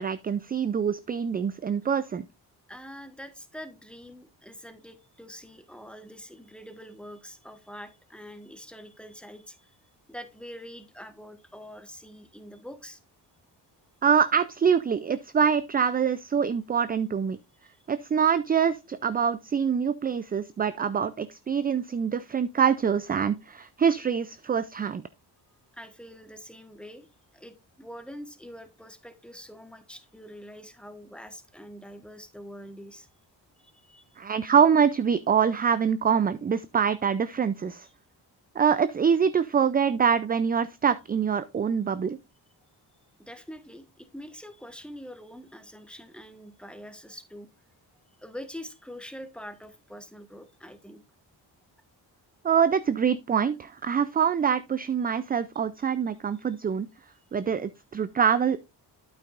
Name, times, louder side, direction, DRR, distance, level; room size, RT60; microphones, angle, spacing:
voice 1, 0.0-2.2 14.0-17.4 17.9-25.0 34.2-37.9 38.6-42.2 52.4-56.9 57.3-58.6, right 7 dB, 25° right, 0.3 m, -25 dB
voice 2, 2.7-9.8 10.1-13.0 17.6-17.8 25.7-27.1 27.3-33.1 33.6-34.2 37.8-37.9 43.2-47.5 48.2-51.0, equal, ahead, 1.3 m, -45 dB
8.8 x 8.5 x 2.4 m
cardioid pair, 85°, 43 cm